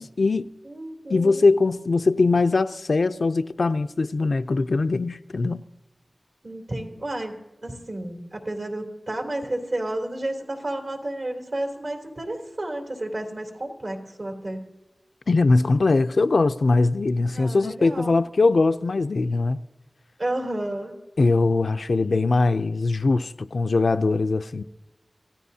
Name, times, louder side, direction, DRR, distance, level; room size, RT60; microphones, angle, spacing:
voice 1, 0.0-0.5 1.1-5.7 15.3-19.6 21.2-24.6, left 3 dB, 85° left, 0.5 m, -21 dB
voice 2, 0.6-1.5 6.4-14.7 17.3-18.2 20.2-21.0, right 1 dB, 65° right, 3.2 m, -31 dB
27.0 x 16.0 x 2.8 m
wide cardioid pair, 45°, 0 cm